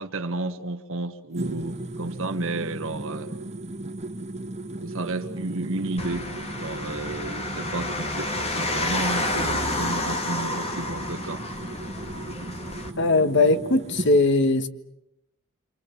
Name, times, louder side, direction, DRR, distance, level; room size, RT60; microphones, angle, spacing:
voice 1, 0.0-3.3 4.7-6.3 6.6-11.4, right 2 dB, 65° right, 1.5 m, -32 dB
sound 1, 1.3-14.1, right 1 dB, 30° right, 2.3 m, -36 dB
sound 2, 6.0-12.9, left 2 dB, 30° left, 2.2 m, -30 dB
voice 2, 13.0-14.7, left 2 dB, 55° left, 1.6 m, -20 dB
27.5 x 27.5 x 7.3 m
head